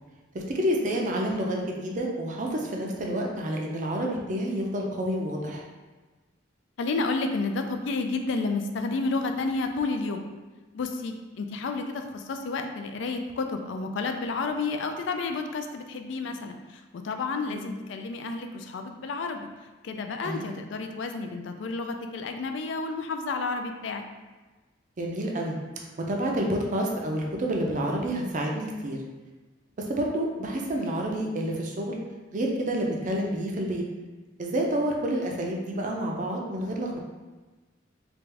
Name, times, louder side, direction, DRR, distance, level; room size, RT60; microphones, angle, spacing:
voice 1, 0.3-5.6 17.5-17.7 20.2-20.4 25.0-25.6 26.1-29.0 29.8-32.0 32.3-33.8 34.4-37.0, right 1 dB, 40° right, 0 dB, 0.5 m, -29 dB
voice 2, 6.8-10.3 10.7-19.5 19.8-24.0, left 3 dB, 65° left, 6 dB, 0.3 m, -31 dB
3.4 x 2.5 x 3.3 m, 1.2 s
head